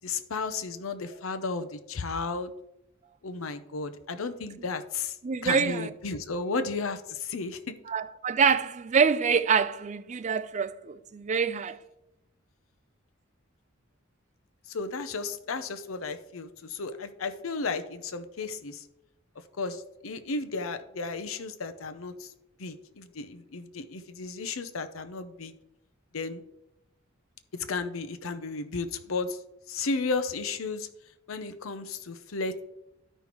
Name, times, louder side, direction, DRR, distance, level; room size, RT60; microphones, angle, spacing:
voice 1, 0.0-2.5 3.2-5.2 5.4-7.8 14.7-18.9 19.6-22.3 22.6-25.6 26.1-26.4 27.5-29.4 29.7-30.9 31.3-32.6, left 4 dB, 85° left, 0.7 m, -34 dB
voice 2, 5.2-5.9 7.9-11.8, right 6 dB, 35° right, 0.4 m, -26 dB
13.0 x 5.5 x 3.0 m
head